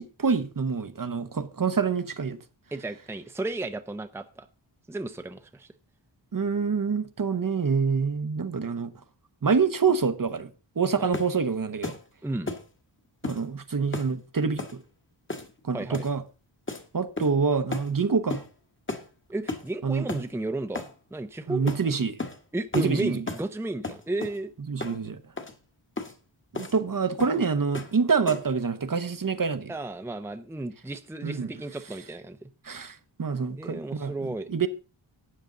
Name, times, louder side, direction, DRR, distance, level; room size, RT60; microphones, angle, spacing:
voice 1, 0.0-2.4 6.3-8.9 9.4-10.5 10.8-11.9 13.2-14.8 15.6-16.2 16.9-18.4 19.8-20.0 21.5-22.1 22.7-23.2 24.7-25.2 26.5-29.7 31.2-31.5 32.6-34.7, right 5 dB, 45° right, 1.0 m, -26 dB
voice 2, 2.7-4.5 4.9-5.7 11.0-11.2 12.2-12.5 15.7-16.0 19.3-20.8 21.1-21.9 22.5-24.5 29.7-32.4 33.6-34.5, right 2 dB, 5° right, 0.7 m, -33 dB
sound 1, 11.1-11.4 11.8-12.0 12.5-12.7 13.2-13.4 13.9-14.1 14.6-14.8 15.3-15.6 15.9-16.2 16.7-16.8 17.2-17.4 17.7-17.9 18.3-18.5 18.9-19.1 19.5-19.7 20.1-20.3 20.7-20.9 21.7-21.8 22.2-22.4 22.7-22.9 23.3-23.5 23.8-24.4 24.8-25.0 25.4-25.5 26.0-26.1 26.5-26.8 27.2-27.4 27.7-28.0 28.3-28.5, left 3 dB, 25° left, 1.5 m, -34 dB
12.5 x 9.0 x 3.9 m
wide cardioid pair, 115°, 47 cm